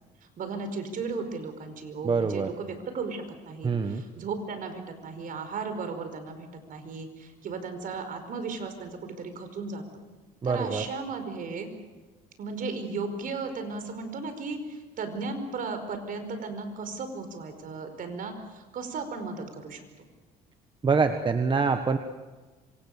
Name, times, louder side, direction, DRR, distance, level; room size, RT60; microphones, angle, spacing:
voice 1, 0.2-10.1 10.4-11.7 12.4-20.1, right 4 dB, 55° right, 8 dB, 5.0 m, -36 dB
voice 2, 2.0-2.5 3.6-4.0 10.4-10.9 20.8-22.0, right 5 dB, 30° right, 8 dB, 1.4 m, -25 dB
26.5 x 25.5 x 6.8 m, 1.3 s
cardioid pair, 110°, 17 cm